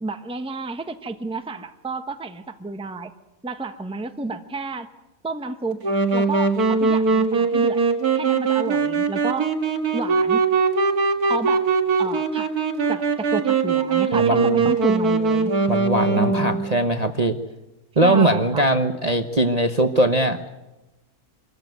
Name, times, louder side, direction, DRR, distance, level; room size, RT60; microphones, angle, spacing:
voice 1, 0.0-3.1 3.4-4.9 5.2-5.8 6.1-7.8 8.1-9.5 9.9-10.5 11.2-11.6 12.0-12.5 12.9-15.6 16.2-16.7 18.0-18.6, right 3 dB, 5° right, 8 dB, 0.9 m, -30 dB
Wind instrument woodwind instrument, 5.8-16.7, right 4 dB, 70° right, 2.3 m, -21 dB
voice 2, 14.1-14.6 15.7-17.4 18.0-20.4, right 1 dB, 30° right, 6 dB, 1.0 m, -20 dB
25.0 x 15.0 x 9.3 m, 1.0 s
omnidirectional pair, 1.7 m